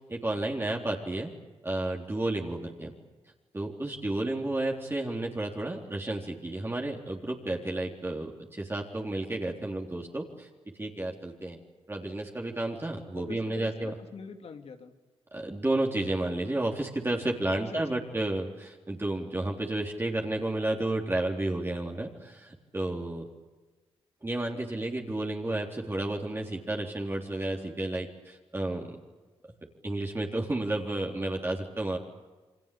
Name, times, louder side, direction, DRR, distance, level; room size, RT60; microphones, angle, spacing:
voice 1, 0.1-1.3 1.6-2.9 3.5-10.5 10.8-11.6 11.9-13.9 15.3-23.2 24.2-29.0 29.8-32.0, right 2 dB, 20° right, 0 dB, 3.7 m, -32 dB
voice 2, 13.1-14.9 17.7-18.2, left 5 dB, 70° left, 6 dB, 2.8 m, -44 dB
29.0 x 24.0 x 8.6 m, 1.2 s
cardioid pair, 75°, 11 cm